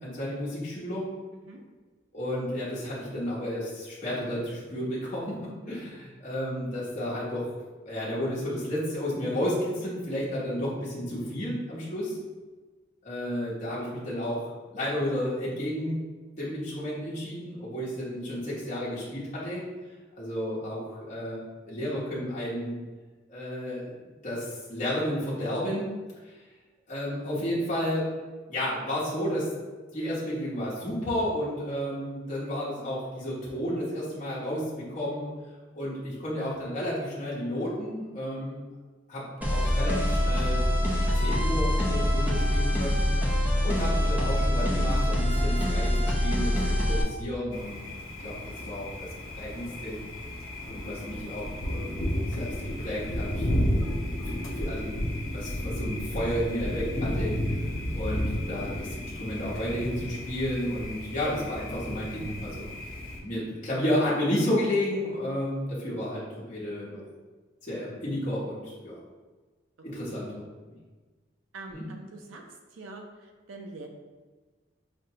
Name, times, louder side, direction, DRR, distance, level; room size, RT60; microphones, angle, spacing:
voice 1, 0.0-1.1 2.1-7.5 7.8-12.2 13.0-16.0 16.4-19.6 20.1-21.4 21.7-22.7 23.3-25.9 26.2-26.4 26.9-28.1 28.5-29.5 29.9-35.3 35.7-38.6 39.1-40.6 41.0-43.1 43.6-47.8 48.2-48.3 48.6-49.1 49.4-50.0 50.7-51.9 52.4-53.5 54.2-57.4 57.9-62.7 63.2-67.0 67.6-69.0 69.8-70.7 71.7-71.9, equal, 40° left, -8 dB, 0.9 m, -32 dB
sound 1, 39.4-47.0, left 1 dB, 10° right, 0.5 m, -25 dB
Thunder, 47.5-63.2, equal, 90° left, 0.7 m, -32 dB
voice 2, 71.5-72.4 72.7-73.9, right 2 dB, 85° right, 2 dB, 0.5 m, -44 dB
5.1 x 2.1 x 2.7 m, 1.3 s
head